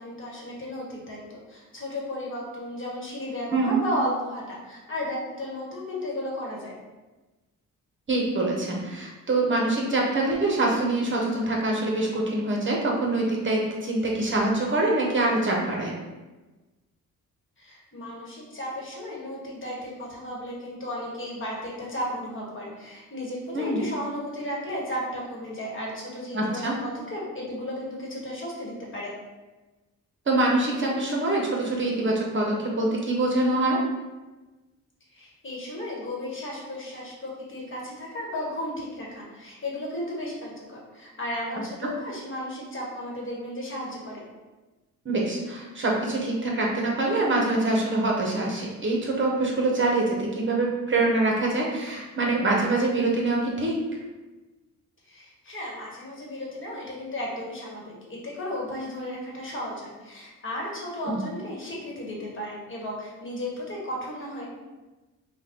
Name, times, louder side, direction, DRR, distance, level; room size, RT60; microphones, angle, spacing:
voice 1, 0.0-6.7 17.6-29.1 35.1-44.2 55.1-64.5, left 1 dB, 40° left, -3 dB, 1.3 m, -34 dB
voice 2, 3.5-3.8 8.1-15.9 23.5-23.8 26.3-26.7 30.3-33.8 45.0-53.8 61.1-61.2, right 2 dB, 40° right, -2 dB, 0.8 m, -25 dB
5.2 x 2.3 x 3.7 m, 1.2 s
cardioid pair, 115°, 32 cm